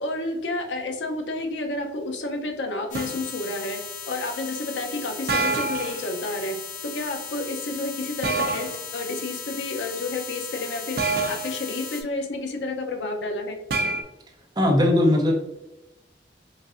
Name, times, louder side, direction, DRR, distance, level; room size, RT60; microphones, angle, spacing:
voice 1, 0.0-3.8 4.1-6.6 6.8-13.6, left 2 dB, 90° left, 4 dB, 0.7 m, -30 dB
sound 1, 2.9-12.0, left 7 dB, 45° left, 0.6 m, -37 dB
sound 2, 2.9-3.2 5.3-6.0 8.2-8.8 11.0-11.6 13.7-14.0, right 3 dB, 55° right, 0.4 m, -26 dB
voice 2, 14.6-15.3, left 1 dB, 25° right, 1 dB, 0.7 m, -18 dB
5.2 x 2.6 x 2.5 m, 0.96 s
head